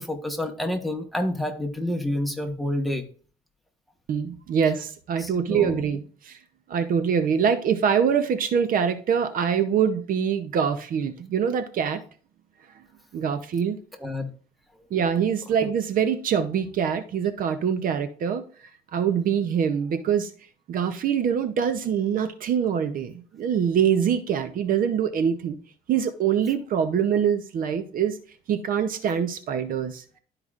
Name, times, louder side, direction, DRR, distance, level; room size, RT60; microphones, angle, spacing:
voice 1, 0.0-3.0 5.2-5.9 14.0-14.3 15.6-15.7, left 1 dB, ahead, 4 dB, 1.2 m, -29 dB
voice 2, 4.1-6.4 6.7-12.0 13.1-13.8 14.9-18.4 18.9-20.3 20.7-25.6 25.9-28.2 28.5-30.0, right 7 dB, 55° right, 10 dB, 0.7 m, -24 dB
12.0 x 4.8 x 2.5 m, 0.42 s
cardioid pair, 110°, 17 cm